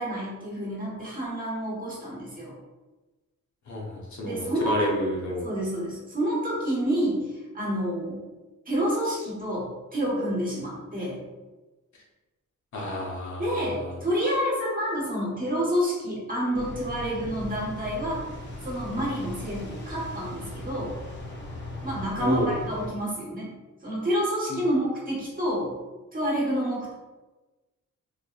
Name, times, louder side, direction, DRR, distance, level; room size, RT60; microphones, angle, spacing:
voice 1, 0.0-2.6 4.2-5.0 5.4-8.1 8.7-11.2 13.4-18.2 18.6-21.0 21.8-23.5 23.8-25.7 26.1-26.9, equal, 25° right, -6 dB, 1.4 m, -28 dB
voice 2, 3.7-5.5 12.7-14.0 22.2-22.5 24.5-24.6, left 1 dB, 65° left, -2 dB, 0.9 m, -30 dB
sound 1, 16.5-22.9, left 1 dB, 35° left, 0.7 m, -38 dB
4.2 x 2.6 x 2.4 m, 1.2 s
wide cardioid pair, 110°, 31 cm